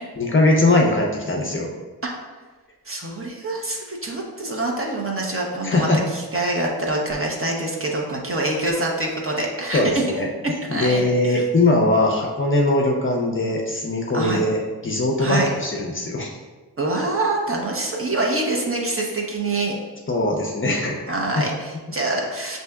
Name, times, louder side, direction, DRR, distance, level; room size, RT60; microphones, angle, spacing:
voice 1, 0.2-1.7 5.6-6.0 9.7-10.3 10.7-16.4 20.1-21.0 21.4-21.5, left 2 dB, 30° left, -1 dB, 0.5 m, -20 dB
voice 2, 2.9-5.9 6.1-9.9 10.7-11.4 14.1-14.4 15.2-15.5 16.8-19.7 21.1-22.6, right 2 dB, 35° right, -1 dB, 0.7 m, -25 dB
6.4 x 2.7 x 2.3 m, 1.3 s
wide cardioid pair, 110°, 40 cm